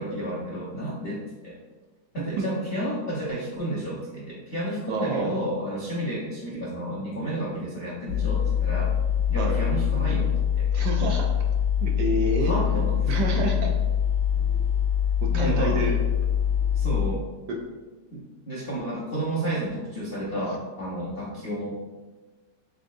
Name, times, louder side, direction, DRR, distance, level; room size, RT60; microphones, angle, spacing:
voice 1, 0.0-1.6 2.1-8.9 9.3-10.7 12.4-13.2 15.2-15.8 16.7-17.2 18.1-21.7, right 1 dB, 60° left, -8 dB, 0.5 m, -31 dB
voice 2, 4.9-5.4 9.4-9.6 10.7-11.3 11.8-12.5 13.1-13.7 15.2-16.0 17.5-17.6, right 2 dB, 70° right, 1 dB, 1.0 m, -28 dB
sound 1, 8.1-17.1, left 8 dB, 80° left, 1.3 m, -24 dB
3.9 x 3.7 x 2.5 m, 1.2 s
omnidirectional pair, 2.0 m